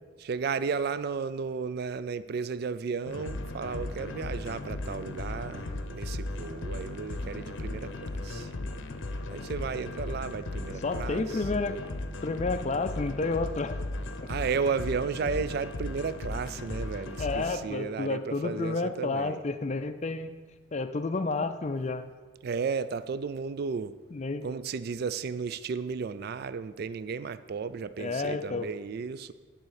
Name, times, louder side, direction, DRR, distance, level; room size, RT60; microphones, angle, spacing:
voice 1, 0.2-8.5 9.3-11.4 14.3-19.4 22.4-23.9 24.4-29.3, right 5 dB, 50° right, 14 dB, 0.3 m, -34 dB
sound 1, 3.0-17.5, left 2 dB, 65° left, 0.7 m, -36 dB
voice 2, 10.8-11.8 12.2-13.8 17.2-20.3 20.7-22.1 24.1-24.4 28.0-28.7, left 3 dB, 35° left, 9 dB, 0.4 m, -30 dB
11.0 x 4.2 x 6.5 m, 1.4 s
head